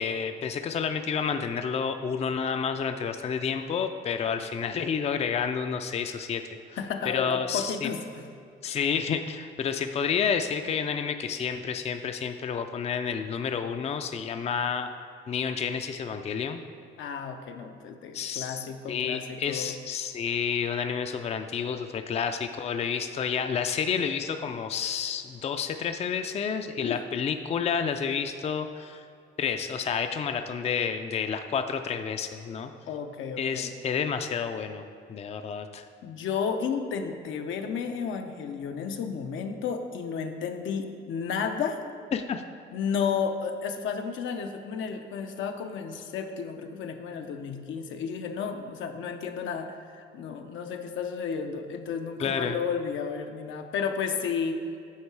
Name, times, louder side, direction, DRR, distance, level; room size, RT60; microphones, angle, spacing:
voice 1, 0.0-6.4 6.7-6.8 7.1-7.9 8.6-14.9 15.3-16.6 18.1-29.1 29.4-32.7 33.4-34.8 35.1-35.8 42.1-42.4 52.2-52.6, left 6 dB, 30° left, 8 dB, 0.4 m, -30 dB
voice 2, 6.8-8.2 17.0-19.8 26.7-27.0 32.8-33.7 36.0-41.8 42.7-54.6, left 6 dB, 75° left, 5 dB, 0.6 m, -32 dB
8.6 x 3.7 x 4.6 m, 2.4 s
cardioid pair, 90°, 20 cm